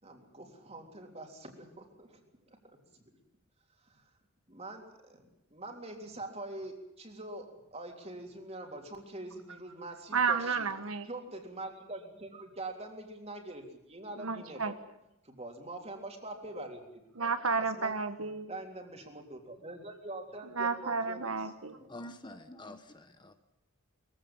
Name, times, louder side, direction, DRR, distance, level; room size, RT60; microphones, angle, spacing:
voice 1, 0.0-2.2 2.5-2.8 3.9-4.0 4.5-10.7 11.1-13.6 13.9-14.7 15.2-18.0 18.5-21.4 21.7-22.0, right 2 dB, 30° right, 3 dB, 3.5 m, -44 dB
voice 2, 10.1-11.1 14.2-14.7 17.2-18.5 20.5-21.8, right 5 dB, 75° right, 9 dB, 1.4 m, -31 dB
voice 3, 21.8-23.4, left 1 dB, 20° left, 8 dB, 1.3 m, -47 dB
22.5 x 16.0 x 9.0 m, 0.87 s
head